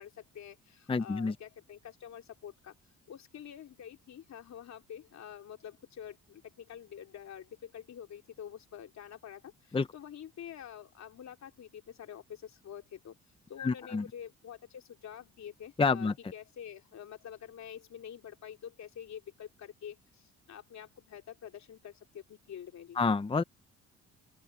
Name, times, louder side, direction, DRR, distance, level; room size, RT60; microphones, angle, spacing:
voice 1, 0.0-2.7 3.1-13.2 13.5-23.0, left 9 dB, 65° left, 3.2 m, -47 dB
voice 2, 0.9-1.3 9.7-9.9 13.6-14.0 15.8-16.1 23.0-23.4, left 4 dB, 20° left, 0.7 m, -28 dB
open air
cardioid pair, 90°, 30 cm